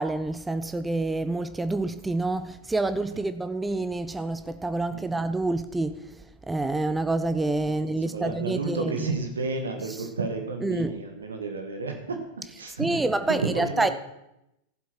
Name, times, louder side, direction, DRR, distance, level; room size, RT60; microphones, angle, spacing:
voice 1, 0.0-6.0 6.5-9.1 10.6-10.9 12.8-13.9, right 2 dB, 10° right, 11 dB, 0.6 m, -27 dB
voice 2, 7.7-12.2 12.6-13.0 13.3-13.9, right 3 dB, 70° right, 5 dB, 1.8 m, -31 dB
15.5 x 7.7 x 4.5 m, 0.88 s
figure-of-eight pair, 90°, 0 cm